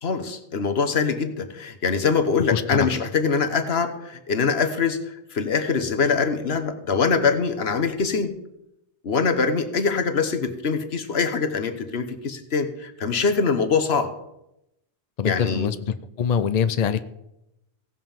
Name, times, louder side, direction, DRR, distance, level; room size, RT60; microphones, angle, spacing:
voice 1, 0.0-8.3 9.0-14.1 15.2-15.7, left 5 dB, 70° left, 7 dB, 1.4 m, -23 dB
voice 2, 2.5-3.0 15.2-17.0, left 7 dB, 50° left, 12 dB, 0.6 m, -24 dB
16.5 x 5.7 x 7.1 m, 0.86 s
omnidirectional pair, 1.1 m